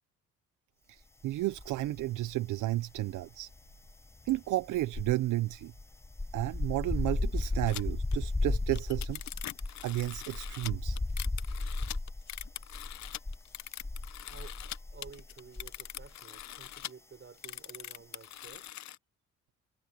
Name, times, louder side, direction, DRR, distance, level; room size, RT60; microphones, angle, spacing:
voice 1, 0.9-3.5 4.3-5.7 6.3-9.2 9.8-11.0, right 16 dB, 80° right, 0.7 m, -32 dB
sound 1, 1.5-2.3 2.6-16.1 16.4-16.7, left 2 dB, 10° left, 0.5 m, -35 dB
sound 2, 7.7-7.8 8.1-8.2 8.5-14.8 15.0-16.9 17.4-19.0, left 13 dB, 65° left, 0.8 m, -43 dB
voice 2, 14.2-18.7, right 6 dB, 40° right, 6.3 m, -53 dB
cardioid pair, 90°, 30 cm